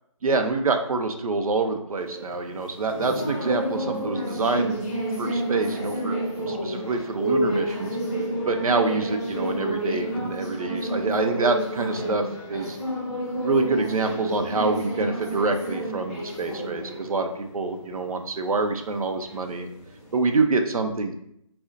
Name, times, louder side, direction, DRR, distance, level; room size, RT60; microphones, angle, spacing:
voice 1, 0.2-4.7 5.2-6.2 6.5-8.0 8.5-12.8 13.4-19.7 20.1-21.1, right 3 dB, 85° right, 6 dB, 0.5 m, -26 dB
sound 1, 2.0-20.4, right 1 dB, 25° left, 0.8 m, -30 dB
2.5 x 2.0 x 3.7 m, 0.75 s
figure-of-eight pair, 170°, 18 cm